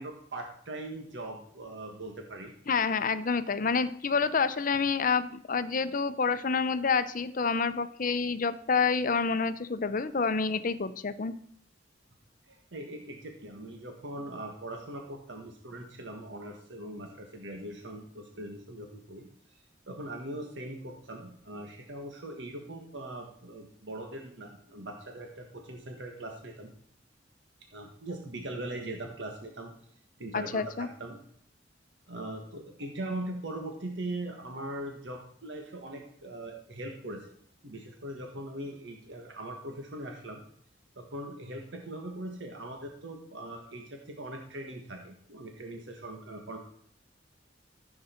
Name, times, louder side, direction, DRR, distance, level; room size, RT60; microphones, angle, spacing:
voice 1, 0.0-2.5 12.5-19.3 19.9-26.7 27.7-29.7 30.2-31.2 32.1-37.3 37.6-40.4 40.9-46.6, right 1 dB, 75° right, 2 dB, 1.5 m, -40 dB
voice 2, 2.7-11.3 30.3-30.9, left 5 dB, 50° left, 13 dB, 0.7 m, -28 dB
14.5 x 7.7 x 4.4 m, 0.65 s
head